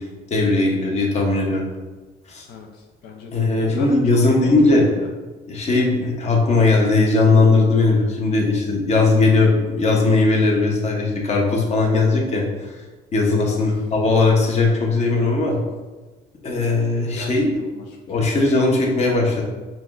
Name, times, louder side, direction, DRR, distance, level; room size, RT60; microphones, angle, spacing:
voice 1, 0.3-1.6 2.3-2.4 3.3-5.0 5.5-12.4 13.1-15.6 16.4-17.5 18.1-19.4, left 3 dB, 40° left, 0 dB, 0.9 m, -18 dB
voice 2, 2.5-5.1 13.5-13.8 17.0-17.8 18.1-18.4, left 3 dB, 80° left, 1 dB, 0.5 m, -36 dB
5.7 x 2.4 x 2.4 m, 1.2 s
cardioid pair, 110°, 17 cm